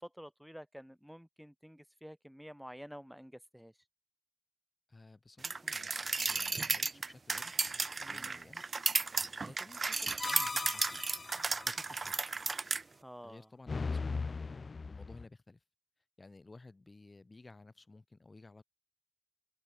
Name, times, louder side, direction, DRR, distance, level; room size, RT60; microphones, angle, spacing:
voice 1, 0.0-3.7 8.0-8.4 13.0-13.5, equal, ahead, 1.5 m, -50 dB
voice 2, 4.9-6.0 6.3-7.5 8.1-8.6 9.4-11.0 11.6-12.2 13.2-14.2 14.9-15.6 16.2-18.6, left 3 dB, 50° left, 5.3 m, -55 dB
sound 1, 5.4-12.8, right 4 dB, 75° right, 0.6 m, -34 dB
sound 2, 10.2-11.9 13.7-15.2, left 4 dB, 80° left, 0.4 m, -38 dB
open air
wide cardioid pair, 75°, 0 cm